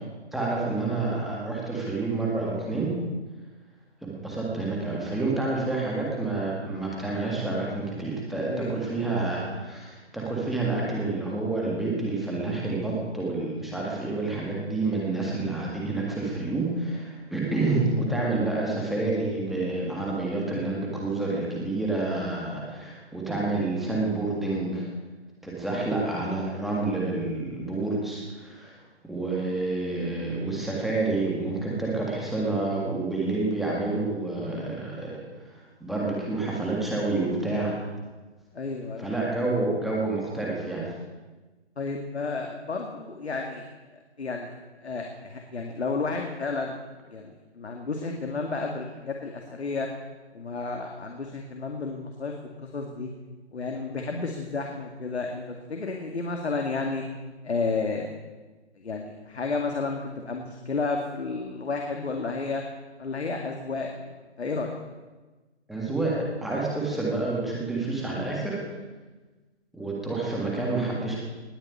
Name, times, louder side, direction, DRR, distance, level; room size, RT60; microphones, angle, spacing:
voice 1, 0.3-2.9 4.0-24.9 25.4-35.2 35.5-37.8 39.0-40.9 65.7-68.6 69.7-71.2, right 2 dB, ahead, -4 dB, 1.6 m, -28 dB
voice 2, 8.5-8.8 25.7-25.9 38.5-39.1 41.8-43.6 43.9-44.5 44.8-46.8 47.1-49.9 50.3-53.1 53.5-57.0 57.4-58.1 58.8-62.6 63.0-64.1 64.4-64.7, left 4 dB, 70° left, 2 dB, 2.3 m, -32 dB
19.5 x 7.1 x 9.6 m, 1.2 s
hypercardioid pair, 165°, 35 cm